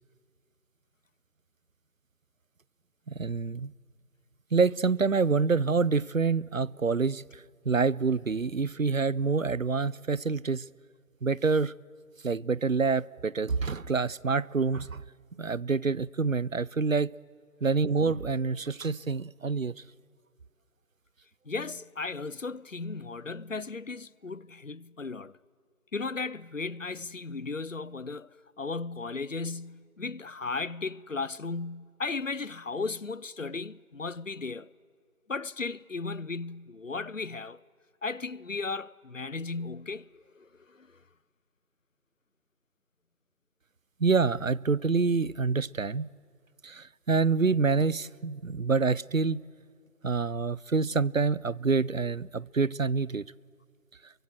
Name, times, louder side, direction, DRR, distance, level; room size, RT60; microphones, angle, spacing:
voice 1, 3.1-3.7 4.5-10.7 11.2-11.7 12.2-15.0 15.4-17.1 17.6-19.7 44.0-46.1 46.6-49.4 50.0-53.3, right 4 dB, 60° right, 0.6 m, -27 dB
voice 2, 21.5-25.4 25.9-34.7 35.3-37.6 38.0-41.0, left 4 dB, 55° left, 0.6 m, -36 dB
28.5 x 23.5 x 7.8 m
figure-of-eight pair, 180°, 46 cm